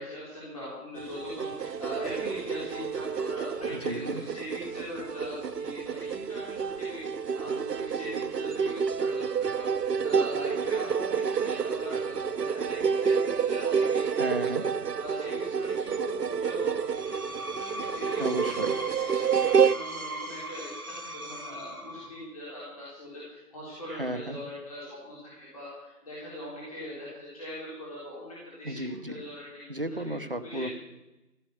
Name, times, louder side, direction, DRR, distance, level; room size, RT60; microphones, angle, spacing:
voice 1, 0.0-14.6 15.0-29.6 30.2-30.7, left 1 dB, 20° left, -7 dB, 3.9 m, -41 dB
sound 1, 1.0-19.8, right 6 dB, 75° right, 0.7 m, -29 dB
voice 2, 3.7-4.2 14.2-14.6 18.2-18.7 23.9-24.4 28.6-29.1 29.7-30.7, right 1 dB, 35° right, 11 dB, 0.9 m, -33 dB
Screech, 16.8-22.3, right 1 dB, 60° right, 2.7 m, -39 dB
15.5 x 7.5 x 9.5 m, 0.99 s
figure-of-eight pair, 170°, 48 cm